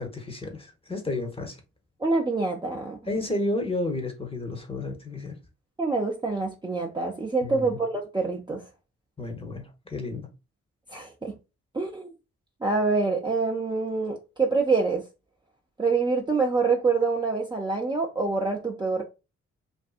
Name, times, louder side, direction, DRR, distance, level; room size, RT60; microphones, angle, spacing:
voice 1, 0.0-1.6 3.1-5.4 7.4-7.8 9.2-10.2, left 2 dB, 15° left, 0.9 m, -31 dB
voice 2, 2.0-3.0 5.8-8.6 10.9-11.3 11.7-12.1 12.6-15.0 15.8-19.0, right 4 dB, 15° right, 0.6 m, -26 dB
2.5 x 2.5 x 2.4 m
hypercardioid pair, 40°, 36 cm